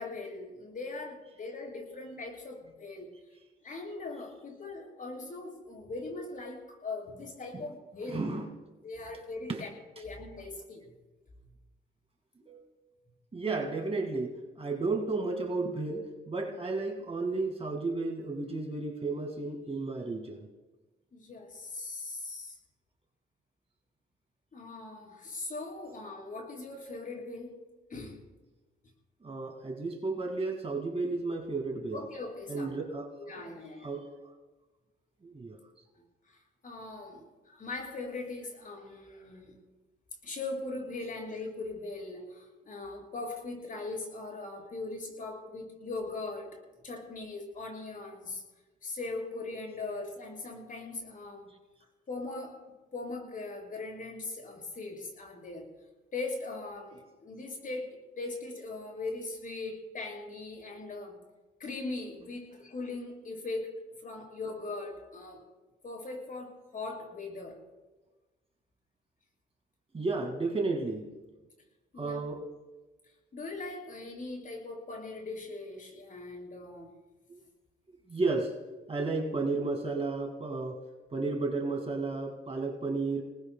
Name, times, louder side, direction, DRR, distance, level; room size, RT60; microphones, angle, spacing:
voice 1, 0.0-3.1 3.6-8.3 8.8-9.7 10.0-10.8 21.1-22.6 24.5-27.5 27.9-28.2 31.9-32.7 33.2-33.9 36.3-39.5 40.2-46.6 46.8-48.4 48.8-51.5 52.1-52.6 52.9-55.7 56.1-61.2 61.6-63.7 64.0-65.4 65.8-67.6 71.9-72.2 73.3-76.9, left 3 dB, 45° left, 0 dB, 7.0 m, -40 dB
voice 2, 8.1-8.6 9.5-9.7 10.0-10.1 12.4-12.7 13.3-20.5 29.2-32.2 32.5-34.1 35.2-35.6 69.9-71.2 72.0-72.5 77.3-77.4 78.1-78.6 78.9-80.9 81.1-83.2, right 3 dB, 30° right, 2 dB, 2.1 m, -33 dB
29.0 x 19.0 x 2.3 m, 1.2 s
cardioid pair, 90°, 20 cm